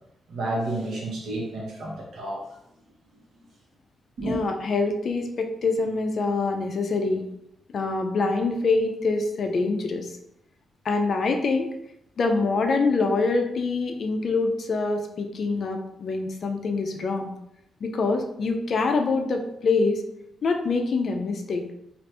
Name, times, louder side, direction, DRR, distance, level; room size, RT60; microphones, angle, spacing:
voice 1, 0.3-2.4 4.2-4.4, right 1 dB, 65° right, -2 dB, 0.9 m, -30 dB
voice 2, 4.2-7.2 7.7-10.2 10.8-11.7 12.2-17.3 17.8-20.0 20.4-21.6, left 3 dB, 45° left, 4 dB, 0.4 m, -25 dB
2.8 x 2.4 x 3.3 m, 0.79 s
wide cardioid pair, 160°, 0 cm